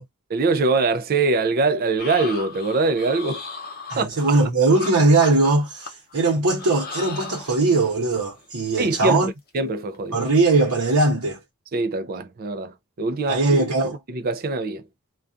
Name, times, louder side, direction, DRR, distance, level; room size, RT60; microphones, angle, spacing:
voice 1, 0.3-3.4 4.0-4.3 8.8-9.2 9.5-10.2 11.7-13.5 14.1-14.8, right 3 dB, 45° right, 0.4 m, -23 dB
sound 1, 2.0-4.9 5.2-6.2 6.5-8.0 8.3-8.5 8.8-9.0 9.3-9.6 9.9-10.2, left 4 dB, 45° left, 0.8 m, -37 dB
voice 2, 3.9-9.3 10.1-11.4 13.3-14.0, right 2 dB, 80° right, 0.8 m, -20 dB
2.4 x 2.3 x 2.5 m
head